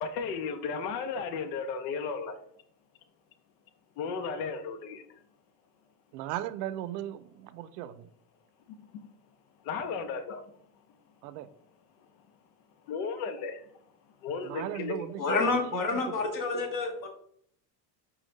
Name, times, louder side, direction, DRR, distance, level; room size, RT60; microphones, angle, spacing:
voice 1, 0.0-2.3 4.0-5.0 9.7-10.4 12.9-13.6 14.2-15.0, left 5 dB, 70° left, 7 dB, 0.8 m, -34 dB
voice 2, 6.1-8.1 11.2-11.5 14.4-16.2, right 12 dB, 70° right, 13 dB, 0.5 m, -37 dB
voice 3, 15.2-17.1, left 3 dB, 40° left, 3 dB, 1.4 m, -28 dB
5.0 x 2.3 x 3.9 m, 0.64 s
hypercardioid pair, 95°, 49 cm